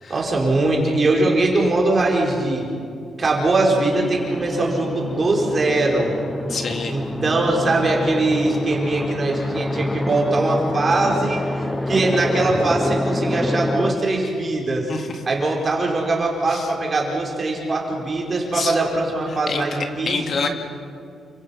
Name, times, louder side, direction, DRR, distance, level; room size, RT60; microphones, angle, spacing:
voice 1, 0.1-2.7 3.2-6.2 6.9-14.9 15.2-20.4, right 2 dB, 30° right, -1 dB, 4.7 m, -21 dB
sound 1, 3.8-13.9, left 1 dB, 5° left, 0.8 m, -27 dB
voice 2, 6.5-7.0 14.9-15.2 16.5-16.7 18.5-18.8 19.5-19.6 20.1-20.5, left 4 dB, 45° left, 5 dB, 2.4 m, -26 dB
29.5 x 26.0 x 5.8 m, 2.4 s
wide cardioid pair, 160°, 0 cm